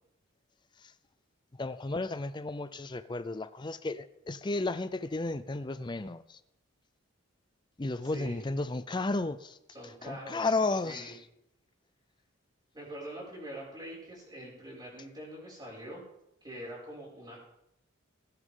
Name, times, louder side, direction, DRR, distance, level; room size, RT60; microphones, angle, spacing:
voice 1, 1.6-6.4 7.8-9.6 10.0-11.2, left 2 dB, 20° left, 0.5 m, -33 dB
voice 2, 8.0-8.4 9.7-10.5 10.8-11.1 12.7-16.0 16.4-17.4, right 1 dB, 20° right, 6.1 m, -44 dB
20.0 x 10.0 x 3.8 m
head